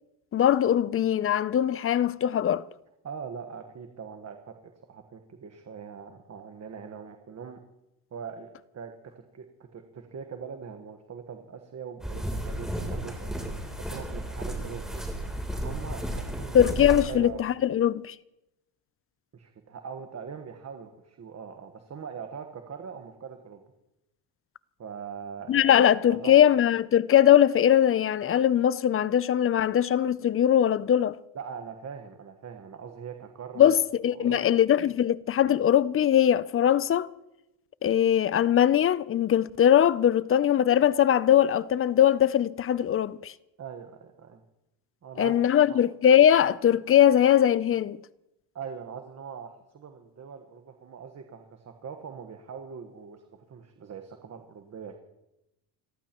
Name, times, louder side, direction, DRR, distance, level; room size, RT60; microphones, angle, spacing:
voice 1, 0.3-2.6 16.5-18.1 25.5-31.2 33.6-37.1 37.8-43.3 45.2-48.0, left 10 dB, 30° left, 0.4 m, -21 dB
voice 2, 3.0-7.6 8.1-9.5 9.7-15.0 15.5-16.6 17.1-17.4 19.3-23.6 24.8-25.7 26.1-26.4 31.3-33.7 34.1-34.6 43.6-44.4 45.0-45.3 45.7-45.8 48.5-54.9, right 6 dB, 35° right, 1.3 m, -42 dB
sound 1, 12.0-17.0, right 1 dB, ahead, 3.3 m, -33 dB
29.5 x 14.0 x 3.0 m
cardioid pair, 115°, 45 cm